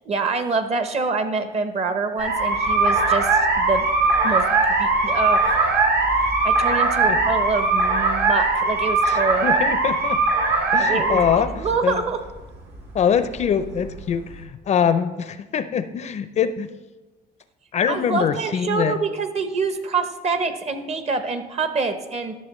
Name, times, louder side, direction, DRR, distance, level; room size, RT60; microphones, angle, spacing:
voice 1, 0.0-3.9 4.2-4.4 4.8-5.5 6.4-9.6 10.8-12.2 17.9-22.4, right 4 dB, 40° right, 9 dB, 0.8 m, -26 dB
sound 1, 2.2-14.4, right 3 dB, 75° right, 2.0 m, -20 dB
voice 2, 9.0-10.2 10.7-12.0 12.9-16.7 17.7-19.0, left 7 dB, 40° left, 11 dB, 0.4 m, -23 dB
12.0 x 6.6 x 3.1 m, 1.2 s
cardioid pair, 110°, 17 cm